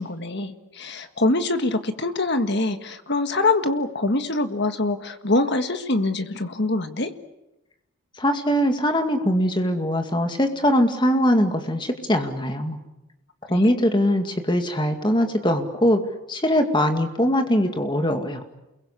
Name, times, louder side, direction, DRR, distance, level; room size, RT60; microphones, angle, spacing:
voice 1, 0.0-7.1 13.5-13.6, left 2 dB, 50° left, 8 dB, 1.7 m, -24 dB
voice 2, 8.2-12.8 13.5-16.0 16.3-18.4, equal, 20° left, 5 dB, 2.2 m, -21 dB
29.0 x 22.5 x 8.3 m, 0.93 s
head